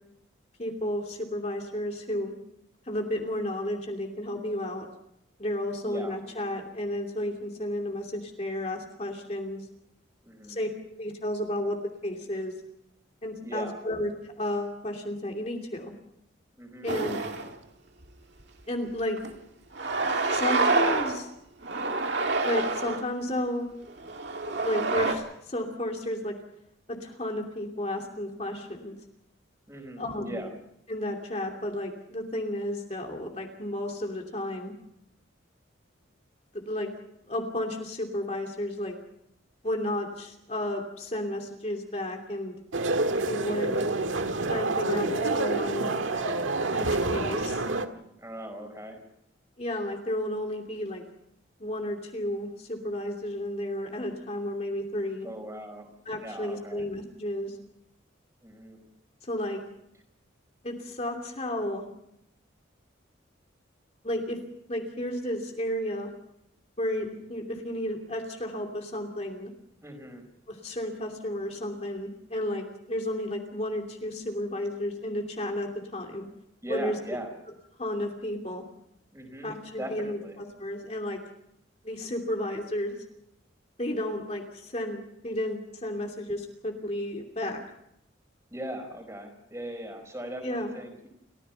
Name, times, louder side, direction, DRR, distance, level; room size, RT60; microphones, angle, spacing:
voice 1, 0.6-2.3 2.8-4.9 5.4-9.7 10.5-10.7 11.0-11.8 12.0-12.5 13.2-14.1 14.4-15.9 16.8-17.3 18.7-19.2 20.3-21.3 22.4-23.7 24.6-26.4 26.9-28.9 30.0-30.4 30.9-34.7 36.5-36.9 37.3-39.0 39.6-42.6 43.3-43.8 44.5-45.9 46.7-47.6 49.6-51.0 51.6-55.3 56.1-57.6 59.2-59.6 60.6-61.8 64.0-64.4 64.7-66.1 66.8-69.5 70.5-76.2 76.7-76.9 77.8-78.6 79.4-81.2 81.8-83.0 83.8-87.6 90.4-90.7, left 1 dB, 35° left, 2 dB, 2.8 m, -32 dB
voice 2, 5.8-6.6 7.8-7.9 10.2-10.6 13.4-13.8 16.6-16.9 29.7-30.5 43.5-43.9 48.2-49.0 55.2-55.9 56.2-56.8 58.4-58.8 69.8-70.2 76.6-77.4 79.1-80.4 88.5-91.1, right 1 dB, 15° right, 5 dB, 4.6 m, -39 dB
sound 1, 16.9-17.5 18.0-18.1 19.2-19.3 19.7-21.2 21.6-23.0 23.9-25.1, right 3 dB, 60° right, 2.3 m, -27 dB
sound 2, 42.7-47.9, right 2 dB, 90° right, 1.7 m, -27 dB
30.0 x 15.5 x 5.8 m, 0.79 s
head